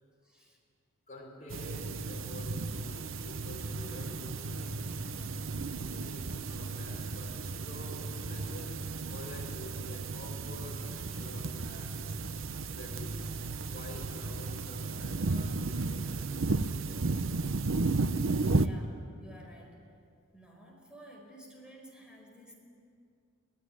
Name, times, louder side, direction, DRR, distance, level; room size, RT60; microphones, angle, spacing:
voice 1, 0.2-0.6 18.6-19.8 20.3-22.5, right 1 dB, 5° right, -1 dB, 4.9 m, -53 dB
voice 2, 1.1-4.9 6.0-12.0 12.8-13.2 13.7-17.1, left 1 dB, 35° left, -2 dB, 5.7 m, -48 dB
sound 1, 1.5-18.7, right 3 dB, 65° right, 0.8 m, -34 dB
23.0 x 18.5 x 9.9 m, 2.4 s
head